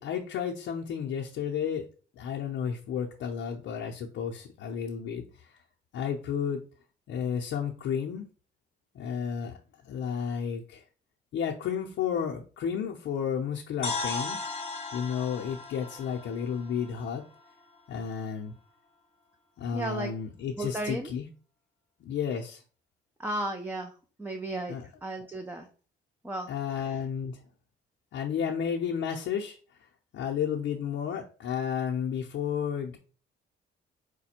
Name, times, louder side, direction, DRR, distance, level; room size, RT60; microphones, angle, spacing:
voice 1, 0.0-1.9 2.1-5.5 5.9-6.6 7.1-8.3 8.9-9.5 9.8-10.8 11.3-14.4 14.9-17.2 17.9-18.5 19.6-21.3 22.0-22.6 24.7-24.9 26.5-27.4 28.1-29.6 30.1-33.0, left 7 dB, 75° left, -1 dB, 0.7 m, -32 dB
sound 1, 13.8-17.8, left 3 dB, 30° left, 0.8 m, -37 dB
voice 2, 19.7-20.1 20.6-21.1 23.2-23.9 24.2-24.8 25.0-25.7 26.2-27.0, right 1 dB, 10° right, 4 dB, 0.6 m, -34 dB
4.9 x 2.2 x 4.3 m, 0.37 s
cardioid pair, 90°, 20 cm